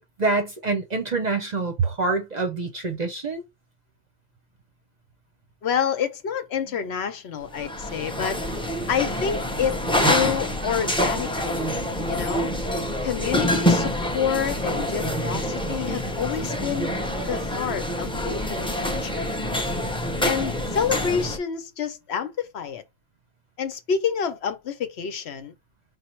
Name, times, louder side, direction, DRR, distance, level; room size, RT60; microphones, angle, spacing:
voice 1, 0.0-3.4, right 3 dB, 45° right, 0.7 m, -26 dB
voice 2, 5.6-8.4 8.9-11.6 12.1-12.5 13.0-16.9 17.3-19.3 20.2-22.8 23.6-25.5, left 7 dB, 65° left, 0.9 m, -28 dB
sound 1, 7.5-21.4, equal, 5° left, 0.5 m, -26 dB
5.2 x 2.0 x 4.4 m
omnidirectional pair, 1.2 m